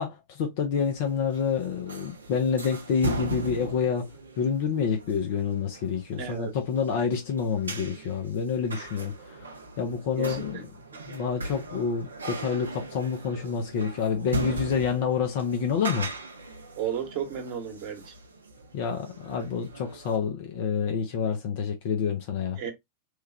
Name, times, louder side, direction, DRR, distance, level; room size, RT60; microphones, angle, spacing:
voice 1, 0.0-9.4 9.8-10.6 11.1-16.1 18.7-22.6, left 6 dB, 50° left, 0.6 m, -28 dB
sound 1, 0.8-20.2, right 2 dB, 75° right, 0.6 m, -39 dB
voice 2, 6.2-6.5 10.2-10.6 16.8-18.1 22.6-22.7, right 8 dB, 45° right, 1.0 m, -33 dB
3.2 x 2.3 x 3.2 m
figure-of-eight pair, 90°, 0 cm